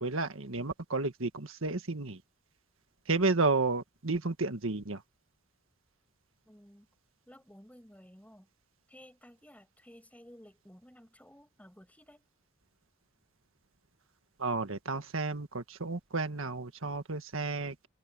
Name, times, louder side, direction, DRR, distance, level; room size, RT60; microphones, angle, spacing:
voice 1, 0.0-2.2 3.1-5.0 14.4-17.9, right 3 dB, 65° right, 1.7 m, -32 dB
voice 2, 6.4-6.9 7.3-8.5 8.9-12.3, equal, 5° left, 6.6 m, -55 dB
head